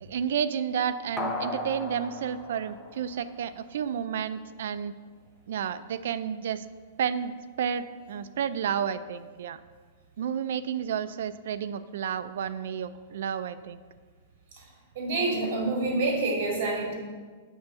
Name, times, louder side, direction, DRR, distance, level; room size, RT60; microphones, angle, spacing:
voice 1, 0.0-4.9 5.5-6.6 7.0-9.6 10.2-13.8, right 8 dB, 70° right, 13 dB, 0.4 m, -31 dB
sound 1, 1.2-3.7 4.1-4.2, left 1 dB, 10° left, 0.7 m, -36 dB
voice 2, 15.0-16.9, right 2 dB, 50° right, 0 dB, 2.1 m, -27 dB
8.1 x 3.5 x 6.6 m, 1.5 s
supercardioid pair, 165°, 0 cm